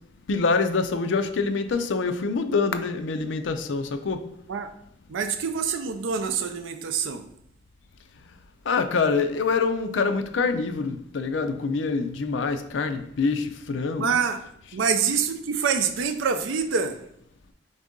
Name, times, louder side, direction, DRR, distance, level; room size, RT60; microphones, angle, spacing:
voice 1, 0.3-4.2 8.7-14.2, left 4 dB, 70° left, 0.5 m, -25 dB
voice 2, 5.1-7.2 14.0-14.4 14.7-17.0, right 6 dB, 85° right, 0.4 m, -26 dB
4.0 x 3.6 x 3.6 m
head